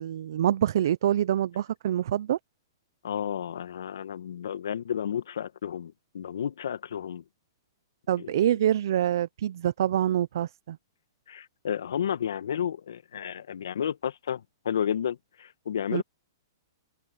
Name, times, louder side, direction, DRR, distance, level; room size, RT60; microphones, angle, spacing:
voice 1, 0.0-2.4 8.1-10.8 15.9-16.0, right 11 dB, 65° right, 0.8 m, -26 dB
voice 2, 3.0-7.2 8.2-8.3 11.3-16.0, left 8 dB, 75° left, 1.9 m, -32 dB
hypercardioid pair, 125°, 2 cm